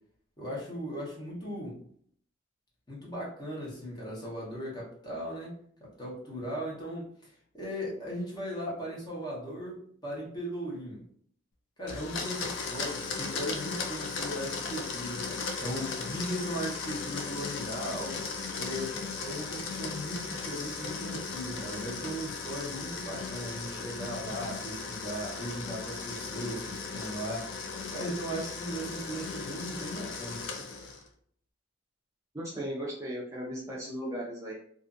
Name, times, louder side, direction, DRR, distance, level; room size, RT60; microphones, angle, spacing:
voice 1, 0.4-1.8 2.9-5.5 5.8-9.8 10.0-11.0 11.8-18.2 18.5-30.4, equal, 20° left, -5 dB, 0.9 m, -38 dB
Domestic sounds home sounds, 11.9-31.1, left 4 dB, 75° left, 0.4 m, -37 dB
voice 2, 32.3-34.5, equal, 15° right, -5 dB, 0.4 m, -36 dB
2.5 x 2.4 x 2.5 m, 0.62 s
head